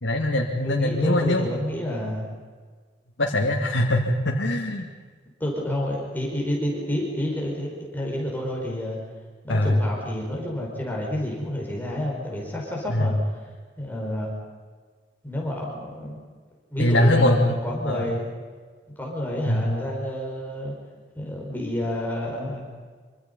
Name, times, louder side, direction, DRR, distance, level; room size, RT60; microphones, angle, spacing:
voice 1, 0.0-1.5 3.2-4.9 9.5-9.7 12.9-13.0 16.8-17.6 17.8-18.1 19.5-19.7, left 1 dB, 80° left, -1 dB, 2.3 m, -22 dB
voice 2, 0.6-2.3 5.4-9.0 9.4-13.2 13.8-14.3 15.2-16.2 16.7-18.3 19.0-20.7 21.2-22.7, left 1 dB, 10° left, -2 dB, 5.3 m, -29 dB
26.5 x 25.5 x 5.5 m, 1.5 s
head